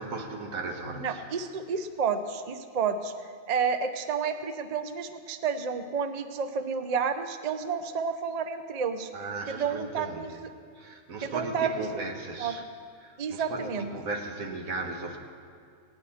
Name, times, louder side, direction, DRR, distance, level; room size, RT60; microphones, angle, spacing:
voice 1, 0.0-1.2 9.1-10.4 10.8-12.6 13.0-15.2, right 3 dB, 80° right, 2 dB, 1.6 m, -36 dB
voice 2, 1.0-3.1 3.5-9.1 9.5-10.3 11.2-12.0 12.4-12.6 13.2-13.9, right 6 dB, 50° right, 9 dB, 0.5 m, -30 dB
17.0 x 9.8 x 4.2 m, 2.2 s
omnidirectional pair, 1.4 m